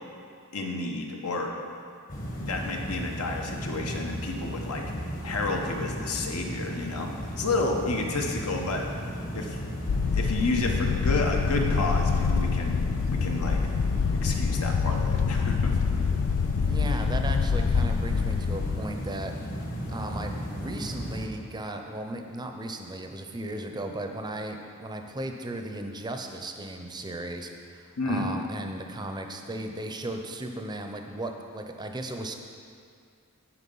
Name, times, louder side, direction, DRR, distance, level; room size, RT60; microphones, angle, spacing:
voice 1, 0.5-1.5 2.4-4.8 5.2-9.6 10.1-12.8 13.1-13.6 14.1-15.8 28.0-28.3, left 2 dB, 80° left, 2 dB, 1.0 m, -30 dB
sound 1, 2.1-21.3, equal, 40° left, 1.1 m, -35 dB
sound 2, 9.9-18.8, left 5 dB, 65° left, 0.3 m, -26 dB
voice 2, 16.6-19.5 19.9-32.3, right 1 dB, 20° right, 4 dB, 0.6 m, -36 dB
10.0 x 4.9 x 5.5 m, 2.3 s
head